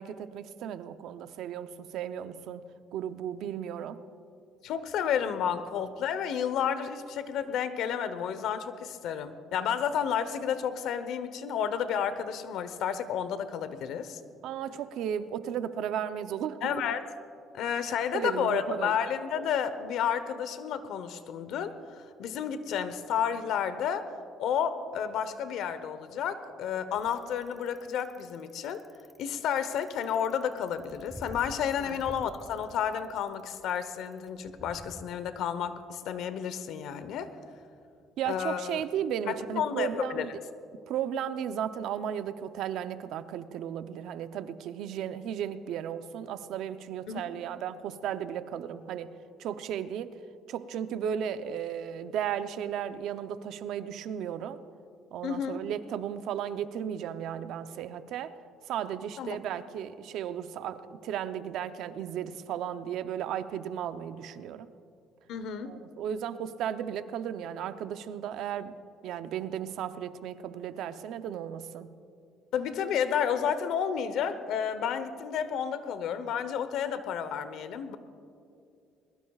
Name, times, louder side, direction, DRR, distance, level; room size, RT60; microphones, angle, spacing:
voice 1, 0.0-2.6 2.9-4.0 14.4-16.9 18.1-19.0 31.8-32.0 38.2-40.3 40.9-49.1 49.4-50.2 50.5-54.6 55.1-58.4 58.7-64.7 65.6-71.9, right 9 dB, 75° right, 11 dB, 0.7 m, -35 dB
voice 2, 4.6-14.2 16.6-17.0 17.5-24.1 24.4-28.8 29.2-37.3 38.3-38.8 39.3-40.3 47.1-47.2 55.2-55.6 59.2-59.4 65.3-65.7 72.5-78.0, left 8 dB, 75° left, 12 dB, 0.9 m, -31 dB
Bicycle, 26.9-35.0, equal, 5° right, 1.2 m, -49 dB
21.5 x 21.0 x 2.4 m, 2.5 s
cardioid pair, 105°, 0 cm